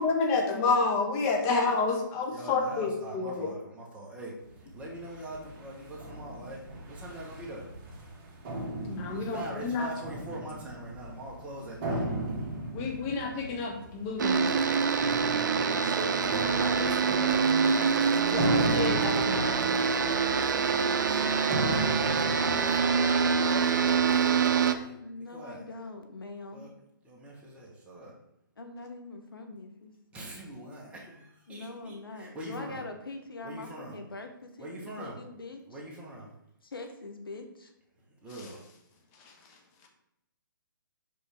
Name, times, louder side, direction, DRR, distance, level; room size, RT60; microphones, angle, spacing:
voice 1, 0.0-3.5 8.8-9.9 12.7-14.6 18.2-19.6 38.4-38.5 39.2-39.6, left 4 dB, 25° left, 2 dB, 1.2 m, -29 dB
voice 2, 2.3-7.7 9.1-12.1 15.7-17.4 21.0-25.0 25.3-25.6 26.5-26.7 27.0-28.1 30.1-32.8 33.4-34.0 34.6-35.2 35.7-36.3 38.1-38.6, right 1 dB, 10° right, -3 dB, 1.3 m, -42 dB
sound 1, 4.4-24.3, right 1 dB, 30° right, 1.7 m, -38 dB
sound 2, 14.2-24.7, right 6 dB, 60° right, 0.6 m, -25 dB
voice 3, 19.8-21.0 25.0-26.6 28.6-29.9 31.5-34.7 35.0-35.6 36.6-37.7, left 3 dB, 85° left, 5 dB, 1.1 m, -43 dB
5.7 x 5.3 x 3.5 m, 0.82 s
hypercardioid pair, 140°, 12 cm